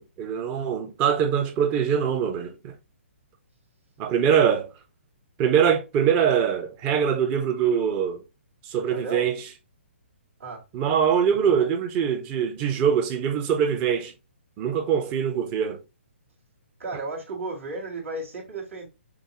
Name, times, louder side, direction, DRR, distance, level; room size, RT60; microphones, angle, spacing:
voice 1, 0.0-2.7 4.0-4.7 5.4-8.2 8.6-9.4 10.7-14.1 14.6-15.8, right 8 dB, 25° right, 0.7 m, -23 dB
voice 2, 8.9-9.3 10.4-10.6 16.8-18.9, right 2 dB, 80° right, 2.3 m, -34 dB
5.9 x 2.0 x 3.0 m
hypercardioid pair, 150°, 7 cm